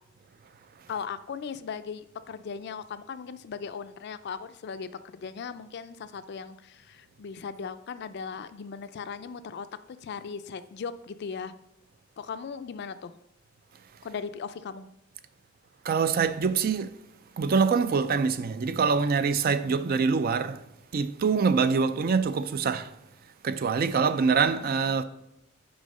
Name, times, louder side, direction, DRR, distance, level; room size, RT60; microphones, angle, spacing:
voice 1, 0.9-11.5 12.2-13.1 14.0-14.9 24.6-25.0, left 6 dB, 55° left, 0.4 m, -38 dB
voice 2, 15.8-16.9 17.4-20.6 20.9-22.9 23.4-25.0, right 5 dB, 50° right, 0.4 m, -25 dB
6.3 x 4.7 x 5.2 m
head